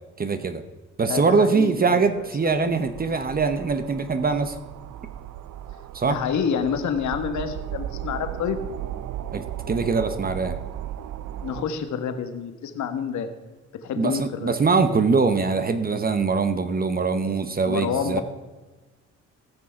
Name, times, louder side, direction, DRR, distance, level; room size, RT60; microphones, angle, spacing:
voice 1, 0.2-0.6 1.0-4.5 5.9-6.2 9.3-10.6 14.0-18.2, right 4 dB, 30° right, 10 dB, 0.9 m, -23 dB
voice 2, 1.1-2.6 6.0-8.6 11.4-13.3 13.8-14.6 17.7-18.2, left 7 dB, 70° left, 8 dB, 1.4 m, -28 dB
sound 1, 1.6-11.6, right 12 dB, 75° right, 0.6 m, -36 dB
15.5 x 6.2 x 5.8 m, 1.2 s
cardioid pair, 90°, 30 cm